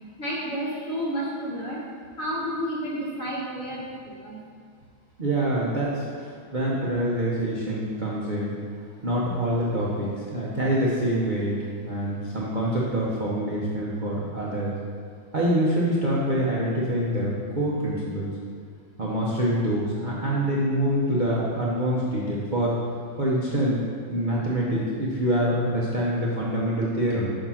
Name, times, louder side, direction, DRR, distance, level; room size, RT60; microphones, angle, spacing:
voice 1, 0.2-1.8 2.2-4.4, equal, 35° left, -6 dB, 1.6 m, -31 dB
voice 2, 5.2-8.5 9.0-11.6 11.9-14.7 15.3-18.3 19.0-22.7 23.2-23.8 24.1-27.4, right 1 dB, 55° right, -6 dB, 0.5 m, -25 dB
6.1 x 5.0 x 5.6 m, 2.1 s
omnidirectional pair, 2.3 m